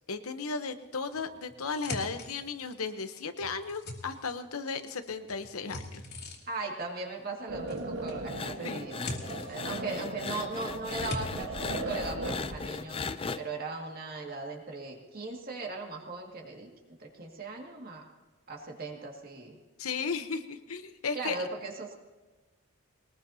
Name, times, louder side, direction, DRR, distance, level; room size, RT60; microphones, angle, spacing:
voice 1, 0.1-6.0 8.6-8.9 9.5-10.0 19.8-21.4, left 4 dB, 80° left, 9 dB, 0.9 m, -35 dB
Cleaning Snowpeas, 1.1-2.9 3.3-4.8 5.0-6.7 7.7-8.3 8.6-10.3 10.6-11.2, left 2 dB, 45° left, 2.6 m, -42 dB
voice 2, 6.5-9.1 9.5-13.0 13.4-16.7 17.0-18.0 18.5-19.6 21.1-21.9, right 3 dB, 40° right, 0 dB, 2.1 m, -38 dB
sound 1, 7.5-12.6, right 2 dB, 70° right, 1.5 m, -38 dB
sound 2, 8.3-13.4, left 4 dB, 25° left, 0.4 m, -38 dB
21.0 x 19.5 x 2.8 m, 1.2 s
head